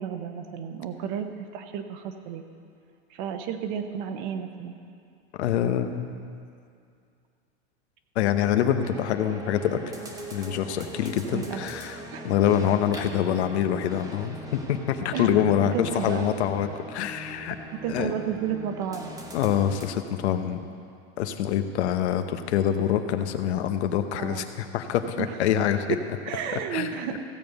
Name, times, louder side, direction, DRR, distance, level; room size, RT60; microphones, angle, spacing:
voice 1, 0.0-2.4 3.1-4.7 11.3-11.6 12.1-12.2 15.1-15.3 15.7-16.3 17.8-19.1 24.2-24.5 25.2-25.4 26.2-27.2, right 8 dB, 45° right, 7 dB, 0.9 m, -32 dB
voice 2, 5.4-6.2 8.1-9.8 10.3-17.6 17.9-18.1 19.3-20.6 21.2-25.9 26.7-26.9, left 9 dB, 85° left, 8 dB, 1.0 m, -25 dB
sound 1, 8.8-19.9, right 1 dB, 10° right, 0.9 m, -41 dB
16.0 x 5.3 x 7.9 m, 2.4 s
supercardioid pair, 165°, 32 cm